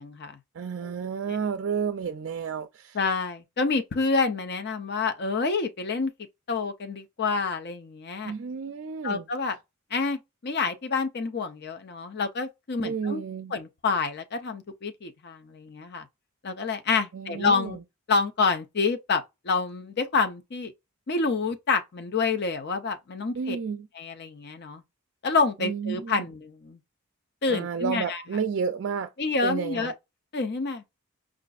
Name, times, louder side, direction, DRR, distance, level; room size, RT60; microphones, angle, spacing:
voice 1, 0.0-0.4 0.8-0.9 2.9-6.1 6.5-8.3 9.0-9.5 9.9-13.2 13.5-16.1 16.4-17.8 18.1-20.7 21.1-23.6 24.0-24.8 25.2-26.8 27.4-28.2 29.2-29.9 30.3-30.8, left 4 dB, 50° left, 0.6 m, -28 dB
voice 2, 0.6-3.0 8.2-9.3 12.8-13.5 17.1-17.8 23.3-23.9 25.6-26.3 27.5-29.1 29.4-29.9, right 6 dB, 55° right, 0.4 m, -31 dB
5.0 x 2.5 x 2.3 m
head